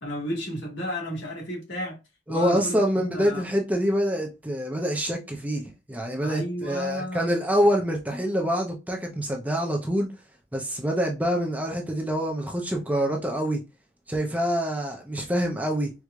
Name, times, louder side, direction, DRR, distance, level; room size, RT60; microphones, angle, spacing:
voice 1, 0.0-2.0 2.3-2.8 3.1-3.4 6.2-7.3, left 1 dB, 75° left, 1.7 m, -32 dB
voice 2, 2.3-10.1 10.5-13.6 14.1-15.9, equal, 10° right, 0.5 m, -26 dB
4.5 x 2.5 x 2.3 m
head